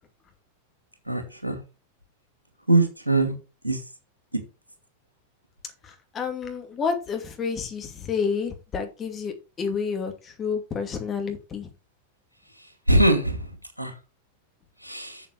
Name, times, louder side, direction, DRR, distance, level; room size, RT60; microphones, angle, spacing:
voice 1, 1.1-1.6 2.7-3.3 3.6-3.8 12.9-13.4 13.8-13.9 14.8-15.2, right 1 dB, 85° right, 2.3 m, -21 dB
voice 2, 5.8-11.7, left 5 dB, 25° left, 2.5 m, -30 dB
7.2 x 7.2 x 5.1 m
figure-of-eight pair, 90°, 0 cm